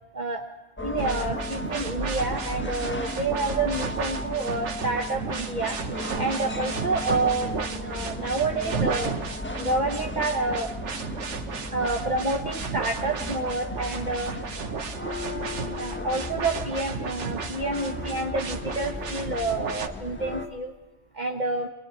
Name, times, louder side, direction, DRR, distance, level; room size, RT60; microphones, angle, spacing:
sound 1, 0.8-20.5, left 1 dB, 10° left, 1.4 m, -36 dB
voice 1, 0.8-5.8 6.2-9.2 9.6-10.7 11.7-14.3 14.7-14.8 15.8-20.7 21.1-21.7, right 2 dB, 40° right, 2 dB, 1.4 m, -28 dB
sound 2, 1.0-19.9, right 5 dB, 70° right, 1.6 m, -34 dB
30.0 x 24.5 x 4.7 m, 1.1 s
omnidirectional pair, 1.2 m